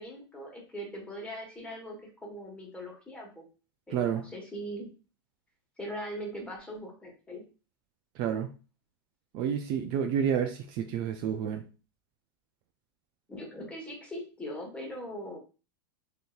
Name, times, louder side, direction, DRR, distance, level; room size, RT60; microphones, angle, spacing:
voice 1, 0.0-3.4 3.9-4.9 5.8-7.4 13.3-15.4, equal, 10° left, -1 dB, 1.3 m, -40 dB
voice 2, 3.9-4.2 8.2-8.5 9.3-11.6, right 8 dB, 45° right, 6 dB, 0.4 m, -29 dB
3.7 x 2.8 x 2.4 m, 0.33 s
hypercardioid pair, 115°, 12 cm